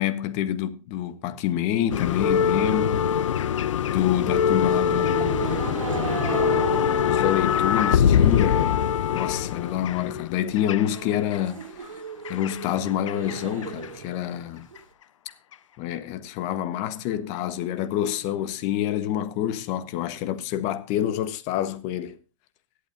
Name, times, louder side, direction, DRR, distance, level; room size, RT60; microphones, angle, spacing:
voice 1, 0.0-3.1 3.9-5.8 7.0-8.8 9.1-12.0 12.3-14.7 15.8-22.2, left 11 dB, 45° left, 1.4 m, -27 dB
sound 1, 1.9-11.4 12.2-13.4 13.6-13.8 14.8-14.9, left 8 dB, 70° left, 0.8 m, -23 dB
sound 2, 3.9-8.9 9.2-9.7 10.0-10.1 10.4-10.5 10.8-14.8, right 5 dB, 80° right, 2.1 m, -36 dB
23.0 x 8.3 x 2.8 m
hypercardioid pair, 100°, 17 cm